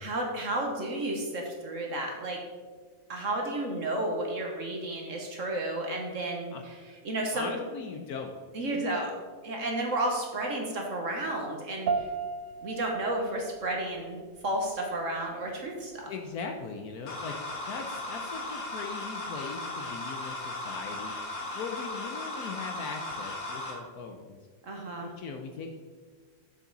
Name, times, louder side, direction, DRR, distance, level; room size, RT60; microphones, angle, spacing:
voice 1, 0.0-2.4 3.1-6.7 7.0-7.5 8.5-9.1 9.4-12.1 12.6-14.2 14.4-16.1 24.6-25.1, right 1 dB, 50° right, 1 dB, 1.3 m, -32 dB
voice 2, 7.3-8.3 16.1-17.3 17.7-21.2 21.5-24.4 25.0-25.7, left 5 dB, 70° left, 4 dB, 1.0 m, -39 dB
sound 1, 11.9-21.4, right 5 dB, 80° right, 0.7 m, -40 dB
sound 2, 17.1-23.7, left 2 dB, 85° left, 2.3 m, -37 dB
7.1 x 7.1 x 3.9 m, 1.5 s
omnidirectional pair, 2.0 m